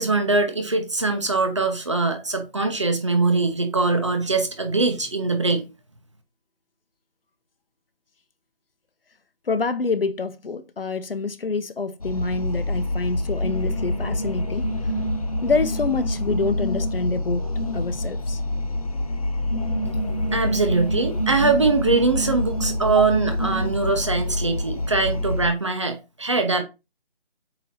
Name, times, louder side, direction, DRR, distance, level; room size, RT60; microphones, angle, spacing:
voice 1, 0.0-5.7 20.3-26.6, right 3 dB, 30° right, 0.9 m, -22 dB
voice 2, 9.5-14.7 15.4-17.5 17.7-18.4, left 4 dB, 65° left, 1.0 m, -26 dB
sound 1, 12.0-25.5, left 1 dB, 40° left, 0.6 m, -26 dB
8.2 x 3.0 x 4.2 m
figure-of-eight pair, 175°, 30 cm